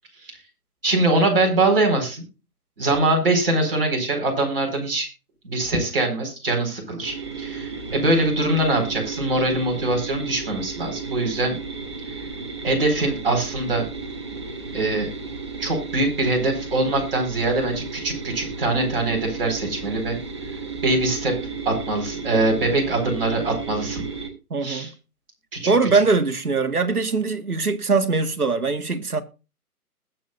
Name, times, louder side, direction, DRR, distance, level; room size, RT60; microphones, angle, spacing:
voice 1, 0.8-2.2 2.8-5.1 5.4-11.5 12.6-13.8 14.7-15.1 15.6-20.2 20.8-21.4 21.6-24.0 24.6-24.9 25.5-25.7, right 2 dB, 35° right, 4.4 m, -23 dB
sound 1, 7.0-24.3, right 4 dB, 20° right, 1.2 m, -34 dB
voice 2, 24.5-24.9 25.6-29.2, right 4 dB, 70° right, 1.7 m, -21 dB
20.5 x 6.8 x 2.4 m
figure-of-eight pair, 150°, 46 cm